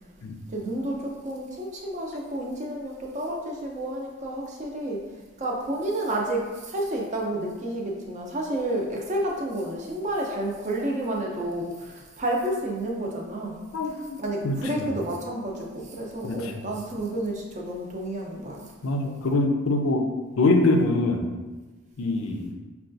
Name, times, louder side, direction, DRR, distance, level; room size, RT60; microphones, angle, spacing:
voice 1, 0.5-5.0 5.4-13.6 14.2-18.7, right 1 dB, 35° right, -1 dB, 0.5 m, -30 dB
voice 2, 13.7-14.2 14.4-14.6 16.2-16.5 18.8-20.1 20.4-21.3 22.0-22.5, left 2 dB, 75° left, 4 dB, 0.4 m, -23 dB
5.2 x 2.3 x 2.6 m, 1.3 s
head